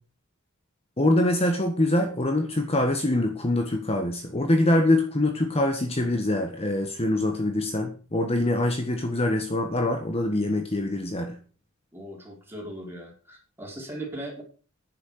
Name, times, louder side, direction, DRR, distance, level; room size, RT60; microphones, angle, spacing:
voice 1, 1.0-11.4, left 1 dB, 30° left, 5 dB, 1.5 m, -24 dB
voice 2, 11.9-14.4, right 1 dB, 10° right, -2 dB, 5.2 m, -38 dB
10.5 x 8.6 x 6.6 m, 0.38 s
head